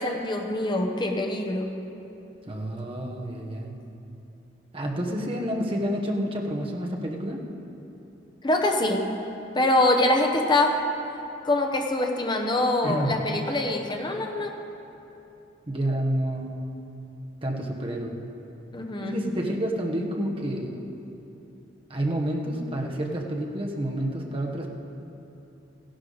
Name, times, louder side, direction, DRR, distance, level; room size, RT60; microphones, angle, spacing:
voice 1, 0.0-1.7 8.4-9.1 9.5-10.8 11.4-14.5 18.7-19.1, left 2 dB, 25° left, 3 dB, 0.9 m, -24 dB
voice 2, 2.5-3.7 4.7-7.4 12.8-13.1 15.7-16.5 17.4-18.1 19.0-20.8 21.9-24.7, right 1 dB, 30° right, 0 dB, 1.1 m, -29 dB
15.5 x 11.5 x 4.0 m, 2.9 s
head